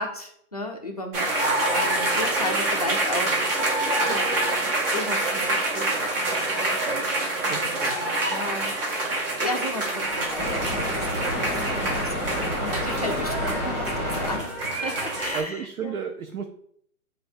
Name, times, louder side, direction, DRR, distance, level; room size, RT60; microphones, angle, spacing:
voice 1, 0.0-3.4 4.0-4.5 4.8-6.8 7.4-7.9 8.3-8.8 9.4-15.9, left 1 dB, 30° left, 1 dB, 0.3 m, -35 dB
sound 1, 1.1-15.4, right 2 dB, 40° right, 1.0 m, -26 dB
voice 2, 7.5-8.0 15.3-16.4, right 6 dB, 70° right, 5 dB, 0.6 m, -33 dB
sound 2, 10.0-15.3, equal, 5° right, 1.4 m, -30 dB
7.6 x 2.5 x 2.5 m, 0.66 s
hypercardioid pair, 150°, 44 cm